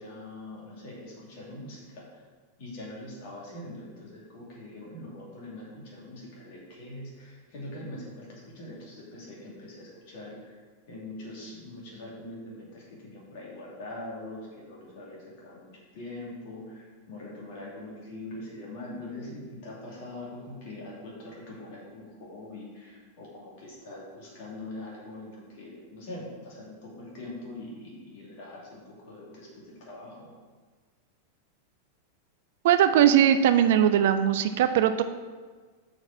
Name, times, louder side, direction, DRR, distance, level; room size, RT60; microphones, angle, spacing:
voice 1, 0.0-2.0 2.6-10.6 10.9-30.3, left 1 dB, 50° left, -4 dB, 2.5 m, -43 dB
voice 2, 32.6-35.0, right 10 dB, 55° right, 10 dB, 0.4 m, -20 dB
6.1 x 4.9 x 6.1 m, 1.4 s
figure-of-eight pair, 90°, 0 cm